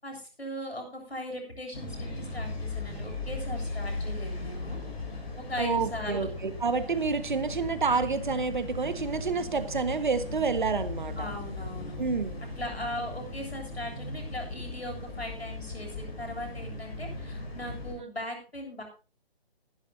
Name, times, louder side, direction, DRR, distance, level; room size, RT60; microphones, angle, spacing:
voice 1, 0.0-4.8 5.5-6.3 11.2-12.0 12.6-18.8, left 1 dB, 80° left, 3 dB, 7.7 m, -39 dB
sound 1, 1.7-17.9, left 2 dB, 50° left, 7.7 m, -37 dB
voice 2, 5.6-11.3 12.0-12.4, right 4 dB, 50° right, 12 dB, 1.4 m, -29 dB
20.0 x 11.5 x 2.7 m, 0.34 s
figure-of-eight pair, 145°, 31 cm